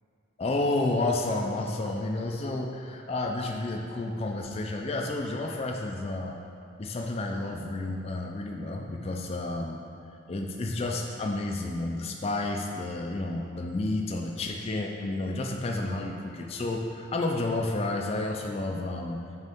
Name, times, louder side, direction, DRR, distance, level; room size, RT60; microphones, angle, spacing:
voice 1, 0.4-6.4 6.8-9.8 10.3-19.2, left 2 dB, 30° left, 1 dB, 0.3 m, -31 dB
6.6 x 4.5 x 3.5 m, 2.7 s
head